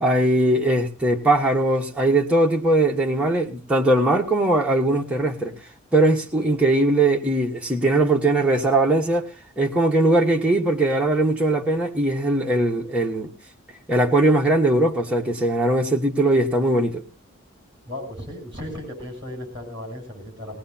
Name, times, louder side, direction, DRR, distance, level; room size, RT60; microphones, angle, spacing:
voice 1, 0.0-5.5 5.9-9.3 9.6-13.3 13.9-17.0, right 1 dB, 5° right, 1.3 m, -20 dB
voice 2, 17.9-20.6, left 1 dB, 25° right, 7.4 m, -35 dB
19.0 x 18.0 x 2.8 m
head